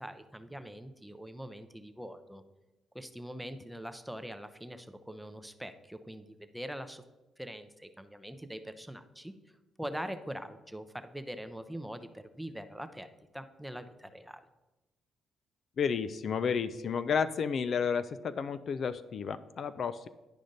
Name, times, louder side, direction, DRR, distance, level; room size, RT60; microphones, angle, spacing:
voice 1, 0.0-2.4 2.9-7.0 7.4-9.3 9.8-13.1 13.3-14.4, equal, ahead, 9 dB, 0.6 m, -43 dB
voice 2, 15.8-20.1, left 6 dB, 55° left, 13 dB, 0.3 m, -31 dB
10.5 x 5.0 x 3.9 m, 1.1 s
cardioid pair, 90°, 0 cm